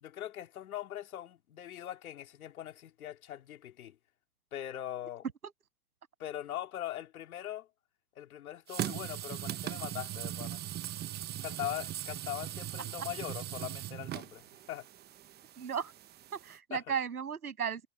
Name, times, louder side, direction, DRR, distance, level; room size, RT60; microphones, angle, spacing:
voice 1, 0.0-4.0 4.5-5.2 6.2-7.7 8.2-10.6 11.4-14.9 16.7-16.8, left 12 dB, 75° left, 3.7 m, -41 dB
sound 1, 8.7-16.6, right 13 dB, 20° right, 0.9 m, -40 dB
voice 2, 15.6-15.9 16.3-17.9, right 7 dB, 90° right, 7.9 m, -35 dB
hypercardioid pair, 115°, 43 cm